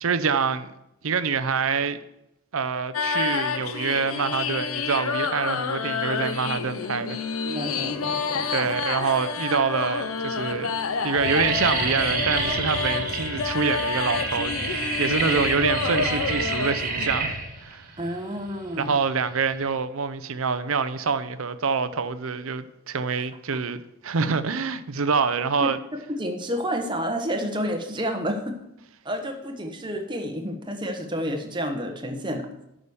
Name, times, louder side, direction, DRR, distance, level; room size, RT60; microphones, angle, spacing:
voice 1, 0.0-0.7 1.0-2.0 2.5-7.2 8.5-10.7 11.0-17.4 17.6-17.9 18.8-25.8, right 5 dB, 70° right, 0.7 m, -26 dB
sound 1, 2.9-17.1, left 5 dB, 70° left, 0.7 m, -29 dB
voice 2, 7.4-8.5 18.0-18.9 25.6-25.7 26.1-28.6 29.0-32.5, equal, 20° right, 1.1 m, -30 dB
sound 2, 8.7-9.1 9.8-9.9 10.2-10.5 10.8-19.7, right 3 dB, 40° right, 1.8 m, -29 dB
11.0 x 5.0 x 7.0 m
head